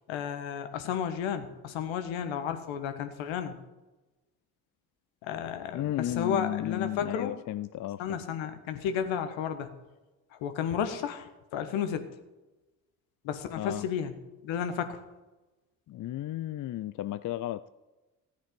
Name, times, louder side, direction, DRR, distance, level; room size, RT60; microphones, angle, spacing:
voice 1, 0.1-3.6 5.2-7.4 8.0-9.8 10.3-12.1 13.2-14.1 14.4-15.0, left 8 dB, 70° left, 8 dB, 1.4 m, -32 dB
voice 2, 5.7-8.2 13.6-13.9 15.9-17.6, left 13 dB, 40° left, 13 dB, 0.5 m, -34 dB
15.0 x 8.7 x 5.3 m, 1.1 s
hypercardioid pair, 45°, 48 cm